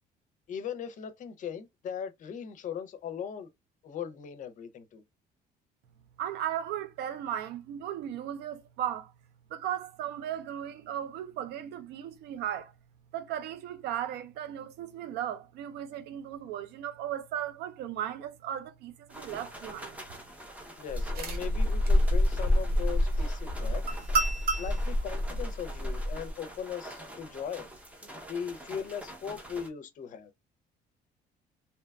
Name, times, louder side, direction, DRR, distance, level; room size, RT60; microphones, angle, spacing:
voice 1, 0.5-3.5 3.8-5.0 20.8-23.8 24.6-27.7 28.3-30.3, left 7 dB, 50° left, 0.5 m, -39 dB
voice 2, 6.2-9.1 9.5-12.7 13.1-20.0, right 10 dB, 80° right, 0.4 m, -36 dB
sound 1, 19.1-29.7, right 1 dB, 10° right, 0.6 m, -46 dB
sound 2, 20.9-26.3, equal, 65° right, 0.8 m, -27 dB
2.8 x 2.2 x 2.2 m
cardioid pair, 110°, 17 cm